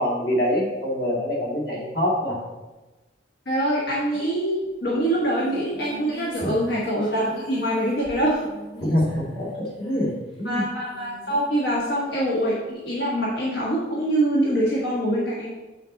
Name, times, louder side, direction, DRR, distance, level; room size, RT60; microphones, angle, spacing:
voice 1, 0.0-2.4 6.4-6.5 8.8-9.5 9.8-10.6, equal, 55° left, -3 dB, 2.1 m, -24 dB
voice 2, 3.4-8.4 10.4-15.5, right 1 dB, 75° left, -5 dB, 1.4 m, -24 dB
Singing, 4.7-4.8 5.0-12.7, equal, 25° left, 1.6 m, -44 dB
6.5 x 6.4 x 3.9 m, 1.1 s
head